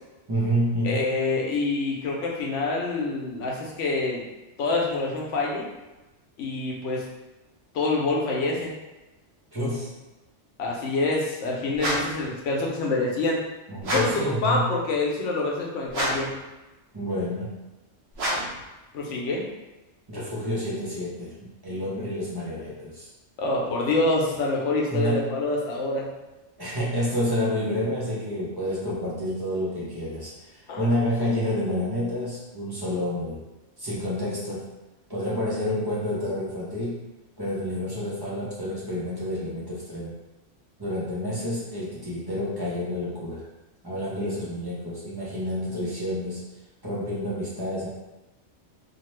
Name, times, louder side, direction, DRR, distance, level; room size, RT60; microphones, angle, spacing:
voice 1, 0.3-1.1 9.5-9.9 13.7-14.7 16.9-17.6 20.1-23.1 24.9-25.4 26.6-33.4 33.8-34.7 35.1-37.0 37.4-40.1 40.8-43.4 43.8-46.4 46.8-47.9, equal, 25° right, -8 dB, 0.6 m, -29 dB
voice 2, 0.8-4.2 4.6-5.7 6.4-7.0 7.7-8.7 10.6-13.4 13.9-16.4 18.9-19.5 23.4-26.1 30.7-30.9, left 2 dB, 85° left, -2 dB, 1.0 m, -26 dB
sound 1, 11.8-12.2 13.8-14.3 15.9-16.4 18.1-18.6, equal, 65° right, 0.9 m, -28 dB
2.8 x 2.1 x 3.0 m, 1.1 s
omnidirectional pair, 1.2 m